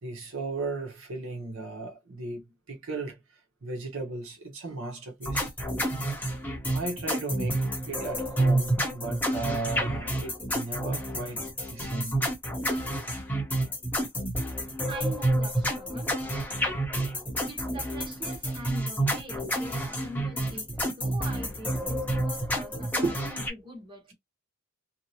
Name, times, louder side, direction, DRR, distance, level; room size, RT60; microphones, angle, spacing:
voice 1, 0.0-5.5 6.7-12.2 23.0-23.2, right 3 dB, 65° right, 0.8 m, -35 dB
sound 1, 5.2-23.5, right 1 dB, 10° left, 0.8 m, -29 dB
voice 2, 14.9-16.2 17.4-24.1, right 1 dB, 25° right, 1.1 m, -43 dB
2.8 x 2.0 x 2.7 m
head